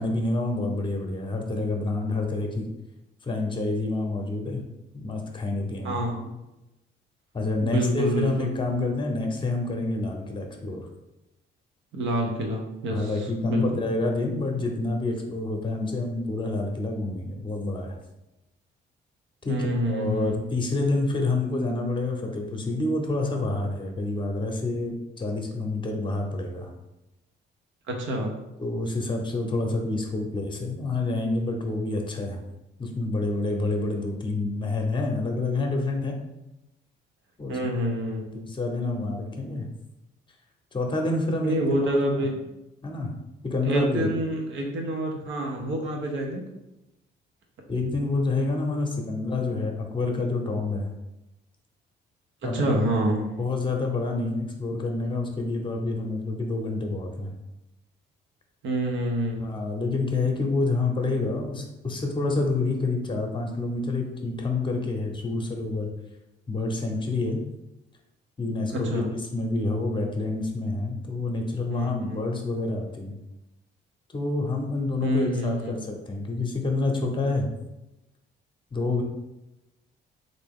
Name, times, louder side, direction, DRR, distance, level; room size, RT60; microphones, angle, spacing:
voice 1, 0.0-2.7 3.2-4.6 4.9-6.0 7.3-10.9 12.9-18.0 19.4-19.6 19.9-26.7 28.6-32.4 32.8-36.2 37.4-37.6 38.3-39.7 40.7-42.3 42.8-43.1 43.4-44.1 47.7-50.9 52.4-52.6 53.4-57.3 59.4-65.9 66.5-67.4 68.4-73.1 74.1-77.5 78.7-79.0, left 2 dB, 25° left, 2 dB, 0.8 m, -28 dB
voice 2, 5.8-6.3 7.6-8.5 11.9-13.6 19.5-20.5 27.9-28.3 37.5-38.3 41.4-42.4 43.6-46.4 52.4-53.3 58.6-59.6 68.7-69.1 71.7-72.2 75.0-75.8, right 1 dB, 75° right, 1 dB, 0.9 m, -27 dB
3.4 x 2.7 x 3.5 m, 0.95 s
cardioid pair, 90°, 20 cm